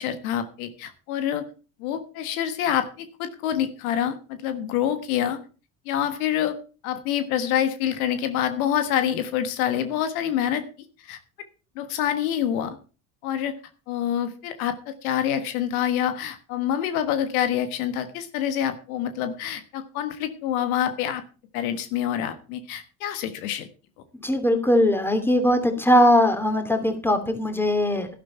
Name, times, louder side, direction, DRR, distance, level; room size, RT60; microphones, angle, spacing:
voice 1, 0.0-1.4 1.8-5.4 5.8-6.5 6.8-10.6 11.0-11.2 11.7-12.8 13.2-13.5 13.9-21.2 21.5-23.7, left 10 dB, 80° left, 9 dB, 1.6 m, -26 dB
voice 2, 24.2-28.1, left 1 dB, 5° left, 7 dB, 2.7 m, -20 dB
11.5 x 11.5 x 4.4 m, 0.36 s
hypercardioid pair, 70°, 42 cm